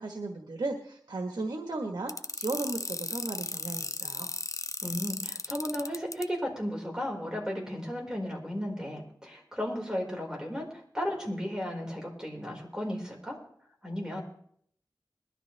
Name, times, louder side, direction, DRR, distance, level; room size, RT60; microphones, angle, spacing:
voice 1, 0.0-4.3, right 2 dB, 90° right, 3 dB, 1.4 m, -35 dB
sound 1, 2.1-6.2, left 3 dB, 45° left, 0.6 m, -35 dB
voice 2, 4.8-13.4 13.8-14.2, equal, 10° right, -1 dB, 4.9 m, -34 dB
21.5 x 12.5 x 3.4 m, 0.65 s
wide cardioid pair, 65°, 8 cm